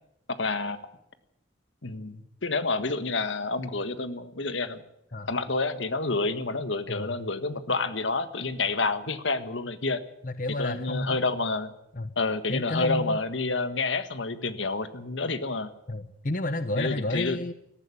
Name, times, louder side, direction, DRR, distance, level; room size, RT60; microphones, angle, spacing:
voice 1, 0.3-0.8 1.8-4.8 5.3-10.0 10.6-11.7 12.1-15.7 16.8-17.4, left 3 dB, 80° left, 10 dB, 1.6 m, -29 dB
voice 2, 10.2-11.2 12.0-12.1 12.5-13.2 15.9-17.5, left 2 dB, 45° left, 11 dB, 0.9 m, -30 dB
18.5 x 14.5 x 9.9 m, 0.77 s
head